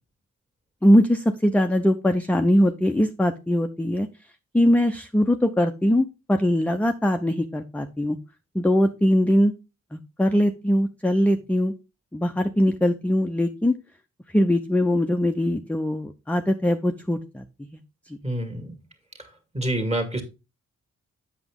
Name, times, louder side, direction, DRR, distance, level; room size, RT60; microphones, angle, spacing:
voice 1, 0.8-4.1 4.5-8.2 8.5-9.5 9.9-11.7 12.1-13.8 14.3-17.7, equal, 5° left, 0.5 m, -21 dB
voice 2, 18.2-18.8 19.5-20.2, right 1 dB, 20° right, 1.9 m, -27 dB
7.9 x 6.1 x 3.6 m
cardioid pair, 90°, 31 cm